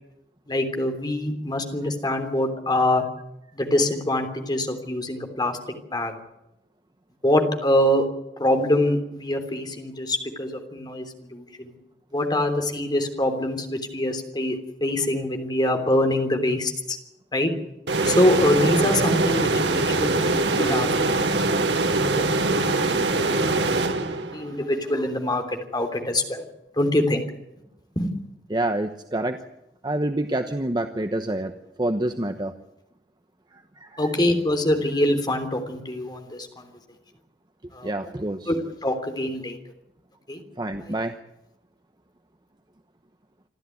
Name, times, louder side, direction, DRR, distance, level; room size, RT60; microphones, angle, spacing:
voice 1, 0.5-3.0 3.5-5.6 5.9-6.1 7.2-8.0 8.4-11.0 11.3-11.7 12.1-17.0 17.3-17.5 18.0-21.4 22.0-22.9 23.3-23.4 24.1-25.4 25.7-26.4 26.8-27.2 27.9-28.1 34.0-36.7 37.7-37.9 38.5-38.6 38.8-39.6 40.3-40.4 40.8-40.9, left 1 dB, 25° left, 6 dB, 3.3 m, -24 dB
sound 1, 17.9-24.5, right 2 dB, 80° right, 2.2 m, -23 dB
voice 2, 28.5-29.4 29.8-31.5 31.8-32.5 33.5-34.1 37.8-38.5 40.6-41.1, right 1 dB, 25° right, 7 dB, 1.0 m, -27 dB
27.0 x 13.0 x 9.5 m, 0.88 s
head